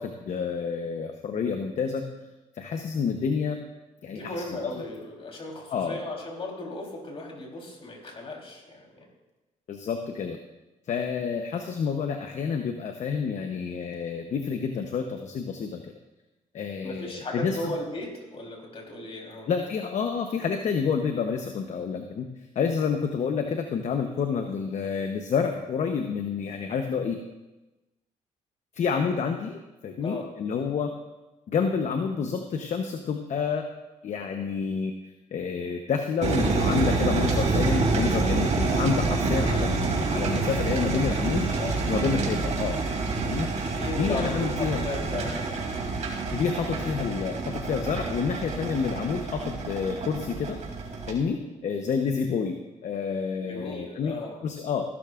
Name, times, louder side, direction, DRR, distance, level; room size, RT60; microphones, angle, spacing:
voice 1, 0.0-2.0 2.5-3.6 4.0-4.3 4.6-4.7 5.7-6.0 9.7-10.4 10.9-15.9 16.5-17.7 19.4-22.3 22.5-27.2 28.7-30.9 31.5-33.7 34.0-34.9 35.3-41.5 41.9-42.8 43.2-43.5 44.0-44.8 46.3-50.6 51.1-52.6 52.8-54.2 54.4-54.8, left 6 dB, 60° left, 5 dB, 0.9 m, -29 dB
voice 2, 4.1-9.1 16.8-19.5 30.0-30.3 40.9-41.9 43.6-45.9 53.4-54.4, left 2 dB, 40° left, 0 dB, 3.9 m, -36 dB
sound 1, 36.2-51.1, right 3 dB, 55° right, 3.0 m, -27 dB
16.0 x 12.0 x 2.5 m, 1.1 s
cardioid pair, 80°, 14 cm